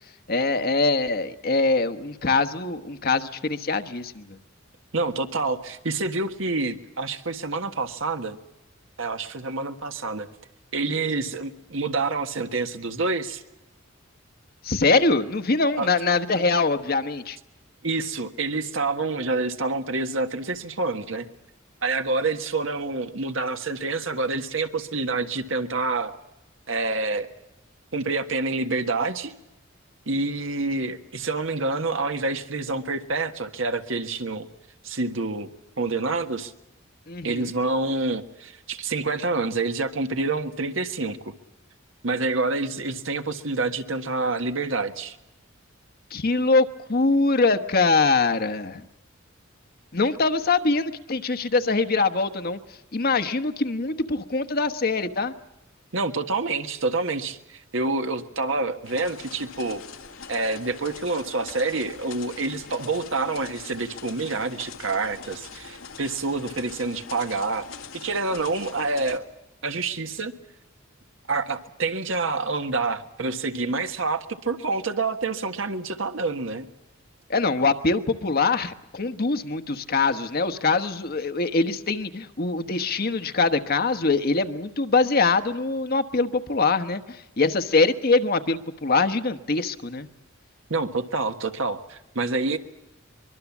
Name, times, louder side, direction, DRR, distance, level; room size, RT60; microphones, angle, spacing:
voice 1, 0.3-4.4 14.6-17.4 37.1-37.5 46.1-48.8 49.9-52.6 52.9-55.3 77.3-90.1, left 3 dB, 50° left, 9 dB, 1.2 m, -23 dB
voice 2, 4.9-8.4 9.0-10.3 10.7-13.4 15.8-15.9 17.8-21.3 21.8-26.1 26.7-27.3 27.9-29.3 30.1-34.5 34.8-35.5 35.8-36.5 37.2-41.3 42.0-45.2 55.9-59.8 60.3-67.6 67.9-69.3 69.6-70.3 71.3-76.7 90.7-92.6, right 3 dB, 70° right, 7 dB, 1.5 m, -27 dB
sound 1, 58.8-69.2, left 6 dB, 80° left, 1.9 m, -43 dB
24.0 x 22.5 x 7.3 m, 0.94 s
head